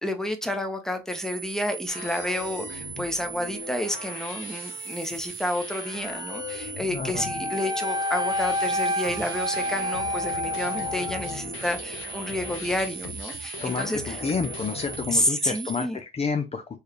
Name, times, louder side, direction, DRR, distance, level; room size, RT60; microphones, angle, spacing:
voice 1, 0.0-14.2 15.1-16.0, left 1 dB, 5° left, 1.0 m, -30 dB
sound 1, 1.1-15.9, right 8 dB, 60° right, 0.7 m, -38 dB
sound 2, 1.9-15.2, left 8 dB, 90° left, 0.8 m, -40 dB
voice 2, 6.9-7.3 13.6-16.8, left 5 dB, 30° left, 0.6 m, -30 dB
Wind instrument woodwind instrument, 7.1-11.4, left 1 dB, 20° right, 0.4 m, -29 dB
4.6 x 3.2 x 3.0 m
cardioid pair, 90°, 20 cm